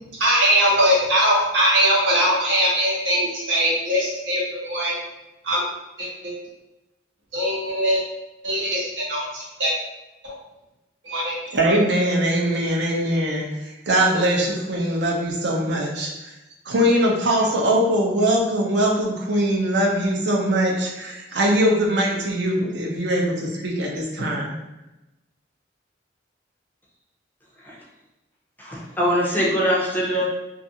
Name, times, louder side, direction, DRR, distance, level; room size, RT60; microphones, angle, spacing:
voice 1, 0.2-4.9 5.4-5.6 6.0-6.3 7.3-8.0 8.4-9.7 10.2-10.3 11.0-11.4 11.6-11.8, equal, 90° right, -6 dB, 1.0 m, -21 dB
voice 2, 11.5-16.3 16.7-24.5, right 1 dB, 65° right, -2 dB, 0.6 m, -22 dB
voice 3, 28.6-30.2, equal, 10° left, -4 dB, 0.5 m, -22 dB
2.4 x 2.4 x 2.7 m, 0.99 s
head